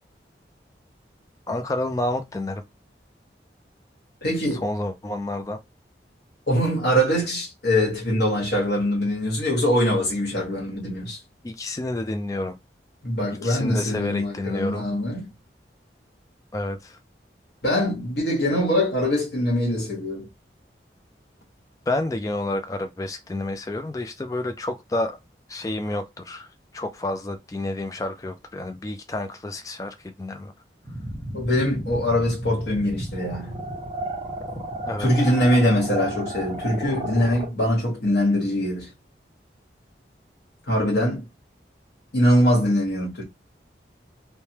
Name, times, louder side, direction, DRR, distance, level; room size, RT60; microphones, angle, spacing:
voice 1, 1.5-2.6 4.5-5.6 11.4-12.6 13.3-14.9 16.5-17.0 21.9-25.2 25.5-26.5 26.7-30.5 34.9-35.3, left 2 dB, 20° left, 0.3 m, -29 dB
voice 2, 4.2-4.6 6.5-11.2 13.0-15.3 17.6-20.3 31.3-33.5 35.0-38.9 40.7-41.2 42.1-43.2, equal, 70° left, 1.2 m, -23 dB
sound 1, 30.8-37.5, right 1 dB, 25° right, 1.2 m, -32 dB
3.1 x 2.2 x 2.8 m
head